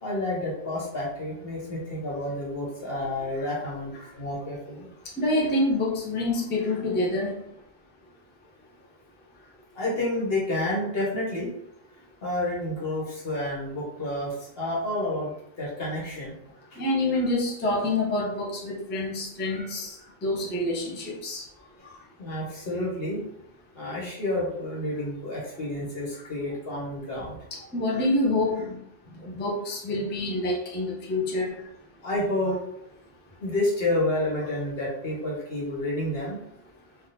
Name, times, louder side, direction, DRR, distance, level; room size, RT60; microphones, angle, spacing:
voice 1, 0.0-4.9 9.7-11.5 12.2-15.3 15.6-16.3 16.7-16.8 22.2-23.2 23.7-27.4 29.0-29.2 32.0-32.6 33.4-36.4, left 1 dB, 70° left, -4 dB, 1.4 m, -29 dB
voice 2, 5.2-7.3 16.8-20.0 20.2-21.4 21.8-21.9 27.7-28.7 29.2-31.5, left 2 dB, 15° left, -3 dB, 0.5 m, -27 dB
3.5 x 2.5 x 2.8 m, 0.75 s
omnidirectional pair, 1.1 m